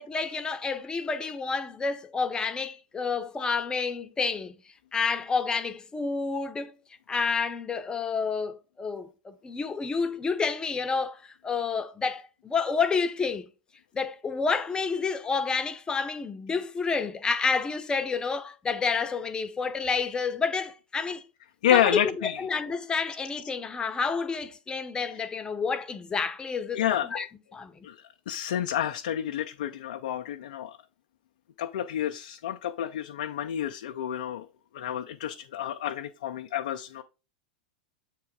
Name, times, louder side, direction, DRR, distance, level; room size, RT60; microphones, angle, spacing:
voice 1, 0.0-4.5 4.9-6.7 7.1-13.5 13.9-21.2 21.7-27.3 27.5-27.8, left 5 dB, 20° left, 0.9 m, -29 dB
voice 2, 21.6-22.4 26.7-27.2 27.8-30.8 31.6-34.5 34.7-37.0, left 10 dB, 70° left, 0.5 m, -29 dB
7.5 x 3.5 x 4.6 m
hypercardioid pair, 100°, 5 cm